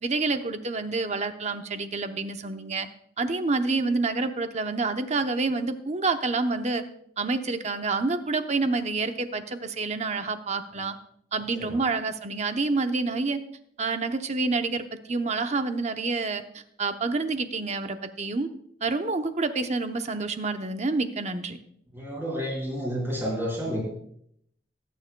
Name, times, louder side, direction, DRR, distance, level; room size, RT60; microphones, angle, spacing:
voice 1, 0.0-2.9 3.2-6.8 7.2-10.9 11.3-13.4 13.8-18.5 18.8-21.6, right 3 dB, 40° right, 8 dB, 0.8 m, -28 dB
voice 2, 21.9-23.8, equal, 15° right, -4 dB, 4.7 m, -30 dB
22.0 x 9.3 x 2.2 m, 0.71 s
head